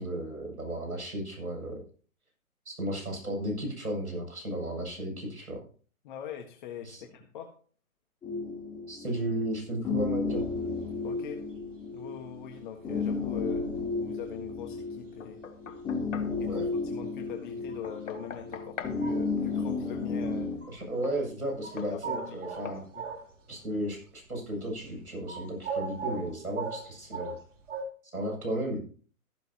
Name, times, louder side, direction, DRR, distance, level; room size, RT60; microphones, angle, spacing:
voice 1, 0.0-1.8 2.7-5.6 6.8-7.0 8.9-10.4 16.4-16.7 20.7-22.8 23.5-27.3 28.1-28.8, right 1 dB, 80° right, 0 dB, 7.6 m, -34 dB
voice 2, 6.0-7.5 11.0-11.4 11.9-15.4 16.4-20.5 21.9-22.4 22.6-23.1, left 9 dB, 35° left, 4 dB, 1.5 m, -42 dB
sound 1, 8.2-20.6, left 4 dB, 10° left, 3.1 m, -33 dB
sound 2, 10.3-23.8 24.1-27.8, right 4 dB, 55° right, 3.2 m, -41 dB
Knock, 15.2-16.4 17.8-19.0 21.0-21.2 21.8-22.0 22.7-22.9, left 6 dB, 60° left, 1.7 m, -42 dB
14.0 x 14.0 x 2.9 m, 0.41 s
figure-of-eight pair, 125°, 43 cm